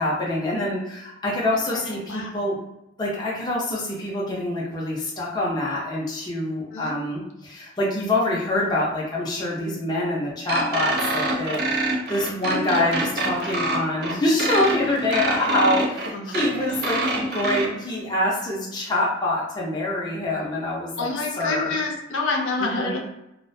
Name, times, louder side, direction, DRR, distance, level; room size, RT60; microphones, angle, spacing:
voice 1, 0.0-2.6 3.0-21.1 21.4-21.8 22.6-22.9, left 1 dB, 20° left, -5 dB, 0.5 m, -25 dB
voice 2, 1.5-2.4 6.7-7.0 16.1-16.4 21.0-23.0, left 3 dB, 85° left, 0 dB, 0.5 m, -28 dB
sound 1, 10.5-17.7, right 2 dB, 55° right, 0.4 m, -26 dB
2.3 x 2.1 x 2.6 m, 0.87 s
head